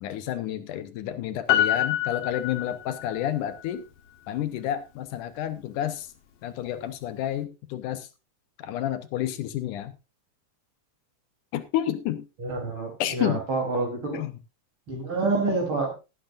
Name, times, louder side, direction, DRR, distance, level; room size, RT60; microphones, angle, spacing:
voice 1, 0.0-3.9 4.3-6.1 6.4-8.1 8.6-9.9 11.5-12.3 13.0-13.4 14.1-14.4, left 11 dB, 75° left, 11 dB, 2.3 m, -30 dB
Piano, 1.5-3.3 3.6-3.7, left 12 dB, 60° left, 1.9 m, -26 dB
voice 2, 12.4-14.2 14.9-15.9, right 3 dB, 40° right, 3 dB, 4.1 m, -27 dB
17.5 x 9.3 x 2.5 m, 0.27 s
omnidirectional pair, 3.7 m